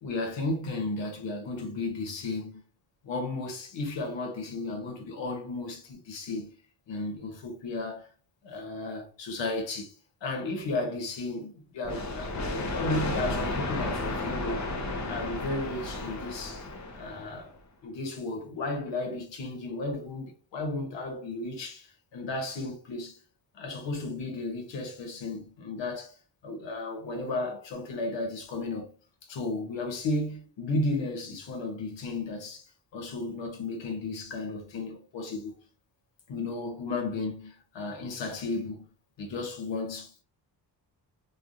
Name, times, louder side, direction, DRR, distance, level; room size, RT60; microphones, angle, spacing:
voice 1, 0.0-2.6 3.0-6.5 6.9-8.1 8.4-9.9 10.2-14.7 15.0-16.7 16.9-17.5 17.8-23.2 23.5-26.2 26.4-28.9 29.3-32.7 32.9-35.5 36.3-38.8 39.2-40.2, left 2 dB, 85° left, 1.0 m, -34 dB
sound 1, 11.8-17.4, left 2 dB, 40° left, 0.7 m, -33 dB
3.2 x 2.3 x 2.5 m
cardioid pair, 115°, 43 cm